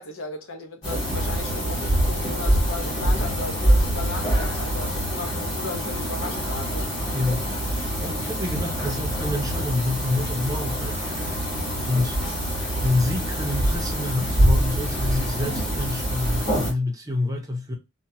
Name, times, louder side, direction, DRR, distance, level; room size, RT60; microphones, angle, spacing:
voice 1, 0.0-6.9, left 3 dB, 65° left, 0.7 m, -36 dB
sound 1, 0.8-16.7, right 1 dB, 20° left, 1.3 m, -25 dB
voice 2, 7.1-7.4 8.0-11.0 11.8-12.2 12.8-17.8, left 2 dB, 15° right, 0.5 m, -27 dB
2.9 x 2.1 x 2.8 m
head